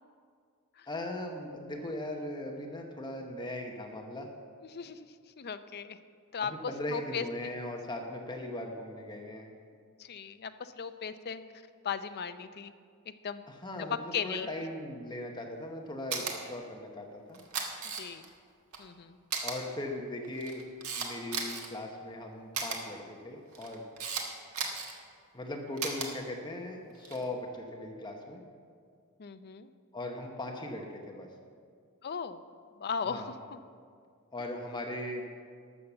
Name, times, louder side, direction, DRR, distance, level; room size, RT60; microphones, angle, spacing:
voice 1, 0.9-4.3 6.4-9.5 13.5-17.4 19.4-20.6 21.0-23.9 25.3-28.4 29.9-31.3 33.0-33.3 34.3-35.3, left 1 dB, 20° left, 2 dB, 1.0 m, -39 dB
voice 2, 5.4-6.0 6.3-7.5 10.0-11.4 11.8-12.7 13.2-13.4 14.1-14.5 18.0-18.2 18.8-19.2 29.2-29.7 32.0-32.4 32.8-33.6, left 6 dB, 45° left, 10 dB, 0.5 m, -37 dB
Camera, 16.1-16.3 17.3-18.3 18.7-18.8 19.3-19.5 20.2-21.7 22.5-22.8 23.5-24.2 24.5-24.9 25.8-26.1 26.9-27.2, right 5 dB, 70° right, 1.6 m, -34 dB
12.5 x 6.6 x 7.1 m, 2.1 s
head